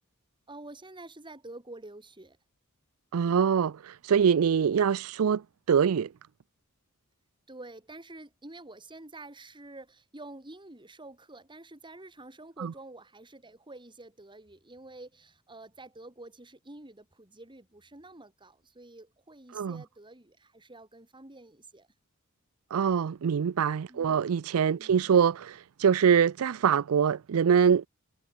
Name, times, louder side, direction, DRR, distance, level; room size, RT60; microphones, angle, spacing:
voice 1, 0.5-2.4 7.5-21.9 23.9-24.2 24.8-25.2, right 2 dB, 20° right, 3.3 m, -48 dB
voice 2, 3.1-5.4 5.7-6.1 12.6-12.7 19.5-19.8 22.7-27.9, right 7 dB, 75° right, 0.4 m, -24 dB
head